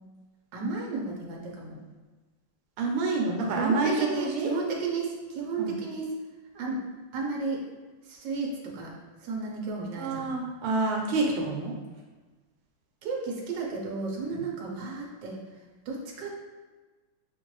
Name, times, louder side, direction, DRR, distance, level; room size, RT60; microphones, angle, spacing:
voice 1, 0.5-1.8 3.6-6.1 6.5-6.8 7.1-7.6 8.1-8.9 9.2-10.3 13.0-15.4 15.9-16.4, right 3 dB, 65° right, -2 dB, 1.4 m, -33 dB
voice 2, 2.8-4.5 5.6-5.7 10.0-11.7 14.3-14.4, right 3 dB, 90° right, 0 dB, 1.6 m, -28 dB
5.8 x 2.5 x 3.1 m, 1.3 s
omnidirectional pair, 2.3 m